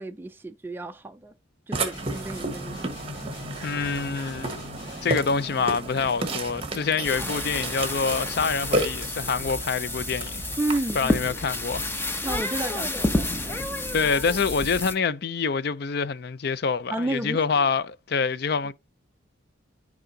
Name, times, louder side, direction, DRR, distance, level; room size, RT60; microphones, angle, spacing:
voice 1, 0.0-1.3 1.7-3.4 7.2-7.3 10.6-11.2 12.2-13.6 16.9-17.4 18.6-18.7, right 1 dB, 10° right, 0.3 m, -32 dB
Burping eructation, 1.7-10.8, right 2 dB, 30° right, 1.2 m, -32 dB
sound 1, 1.9-5.4, left 5 dB, 75° left, 3.0 m, -45 dB
voice 2, 3.6-4.5 5.0-10.4 10.9-11.9 13.9-18.7, left 5 dB, 55° left, 0.4 m, -26 dB
sound 2, 7.0-14.9, left 1 dB, 10° left, 0.7 m, -30 dB
12.5 x 4.9 x 2.7 m
head